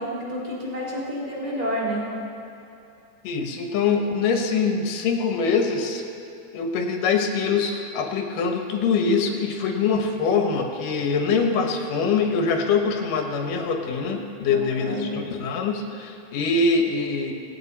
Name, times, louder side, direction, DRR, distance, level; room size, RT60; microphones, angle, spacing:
voice 1, 0.0-2.1 14.5-15.2, equal, 15° right, -7 dB, 2.8 m, -29 dB
voice 2, 3.2-6.0 6.5-17.3, left 5 dB, 80° left, 3 dB, 2.8 m, -24 dB
24.0 x 8.3 x 4.2 m, 2.6 s
omnidirectional pair, 3.8 m